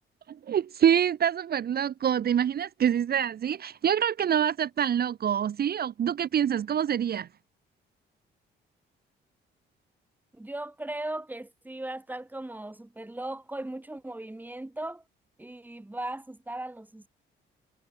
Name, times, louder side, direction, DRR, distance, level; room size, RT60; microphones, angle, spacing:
voice 1, 0.3-7.3, right 9 dB, 50° right, 0.9 m, -26 dB
voice 2, 10.3-15.0 15.4-17.1, right 1 dB, 10° right, 1.9 m, -38 dB
cardioid pair, 90°, 20 cm